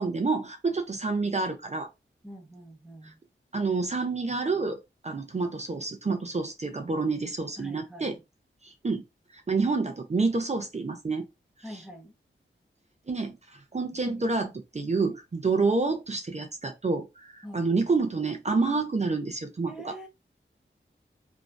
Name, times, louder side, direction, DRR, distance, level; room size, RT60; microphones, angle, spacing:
voice 1, 0.0-1.9 3.0-3.1 3.5-8.1 8.6-9.0 9.3-11.3 13.1-13.4 13.7-19.9, right 3 dB, 35° right, 0.5 m, -28 dB
voice 2, 2.2-3.2 7.6-8.2 11.6-12.1 13.9-14.2 14.9-15.2 17.4-17.7 19.7-20.1, equal, 5° right, 0.8 m, -45 dB
2.5 x 2.3 x 2.2 m
wide cardioid pair, 75°, 21 cm